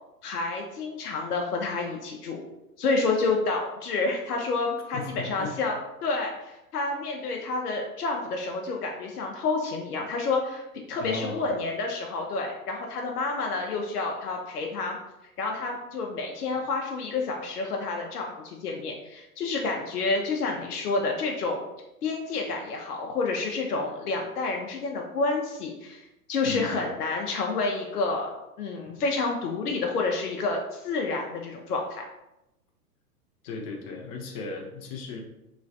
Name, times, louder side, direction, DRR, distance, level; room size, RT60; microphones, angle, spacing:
voice 1, 0.2-2.4 2.8-5.8 6.0-10.6 10.9-15.0 15.4-21.6 22.0-28.3 28.6-32.0, left 3 dB, 75° left, 1 dB, 0.6 m, -29 dB
voice 2, 4.9-5.6 11.0-11.5 26.4-26.9 28.8-29.0 33.4-35.2, left 4 dB, 25° left, 1 dB, 0.4 m, -36 dB
3.1 x 3.0 x 2.6 m, 0.91 s
figure-of-eight pair, 105°, 46 cm